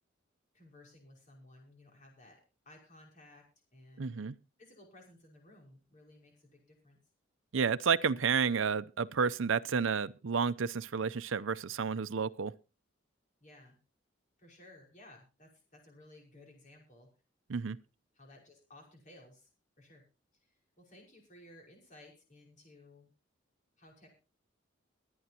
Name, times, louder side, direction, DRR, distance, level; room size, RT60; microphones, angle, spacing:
voice 1, 0.5-2.4 2.7-3.4 3.7-4.1 4.6-7.0 13.4-13.8 14.4-17.1 18.2-19.5 19.8-20.0 20.4-23.1 23.8-24.1, left 1 dB, 40° left, 5.3 m, -57 dB
voice 2, 4.0-4.3 7.5-12.5 17.5-17.8, right 6 dB, 80° right, 0.6 m, -31 dB
23.5 x 9.3 x 2.9 m
head